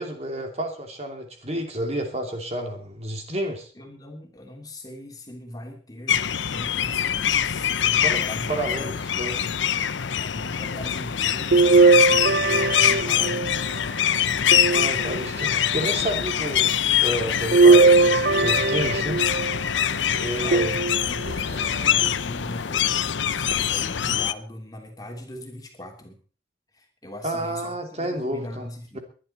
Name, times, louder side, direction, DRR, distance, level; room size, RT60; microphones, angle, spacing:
voice 1, 0.0-3.7 7.9-8.2 8.5-9.4 14.7-16.7 17.0-19.2 20.1-20.7 27.2-28.7 28.9-29.0, right 1 dB, 35° right, 4 dB, 2.9 m, -30 dB
voice 2, 3.8-9.0 10.2-13.7 14.4-15.1 20.4-22.9 23.3-26.2 26.7-29.0, left 1 dB, 20° left, 2 dB, 3.2 m, -41 dB
sound 1, 6.1-24.3, left 9 dB, 80° left, 0.7 m, -24 dB
sound 2, 11.5-13.8 14.5-15.5 17.5-19.6 20.5-21.4 22.0-22.1 23.5-23.6, right 3 dB, 55° right, 0.6 m, -19 dB
22.5 x 11.0 x 4.3 m, 0.39 s
head